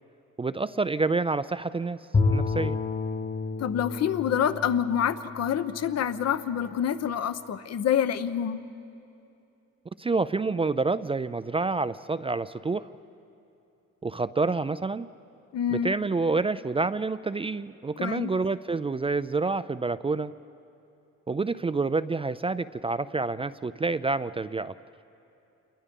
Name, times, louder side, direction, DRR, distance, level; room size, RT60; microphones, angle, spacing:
voice 1, 0.4-2.0 2.3-2.8 10.0-12.9 14.0-15.1 15.7-20.3 21.3-24.8, right 3 dB, 20° right, 13 dB, 0.4 m, -28 dB
Bowed string instrument, 2.1-6.4, left 4 dB, 30° left, 1.4 m, -30 dB
voice 2, 3.6-8.6 15.5-15.9 18.0-18.3, left 9 dB, 60° left, 12 dB, 0.9 m, -27 dB
28.0 x 21.5 x 5.4 m, 2.8 s
cardioid pair, 90°, 30 cm